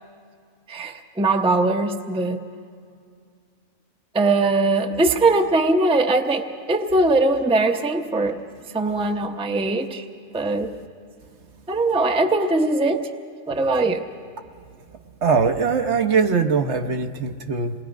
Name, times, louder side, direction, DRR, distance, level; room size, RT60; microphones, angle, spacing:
voice 1, 0.7-2.4 4.1-8.4 8.7-10.0 10.3-10.7 11.7-13.1 13.5-14.0, right 2 dB, 5° right, 4 dB, 0.6 m, -21 dB
voice 2, 15.2-17.7, right 5 dB, 60° right, 6 dB, 1.1 m, -21 dB
27.5 x 20.0 x 5.2 m, 2.3 s
omnidirectional pair, 1.4 m